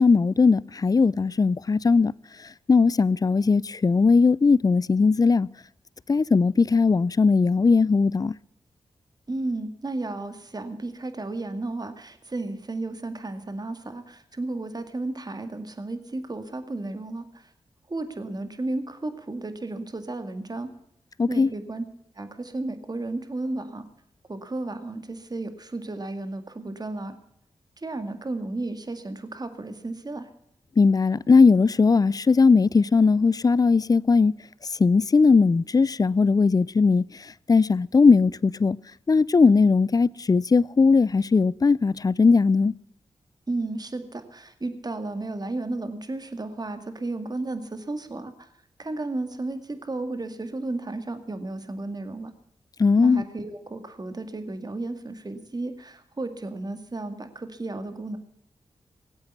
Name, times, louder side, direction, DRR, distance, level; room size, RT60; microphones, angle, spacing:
voice 1, 0.0-2.1 2.7-5.5 6.1-8.3 21.2-21.5 30.8-34.3 34.8-37.0 37.5-38.8 39.1-42.7 52.8-53.2, left 4 dB, 35° left, 0.5 m, -19 dB
voice 2, 9.3-17.5 17.9-20.7 21.3-21.9 22.2-23.9 24.3-27.1 27.8-30.3 43.5-48.5 48.8-52.3 53.0-58.2, right 2 dB, 35° right, 2.1 m, -33 dB
17.5 x 8.0 x 8.2 m
supercardioid pair, 40°, 11 cm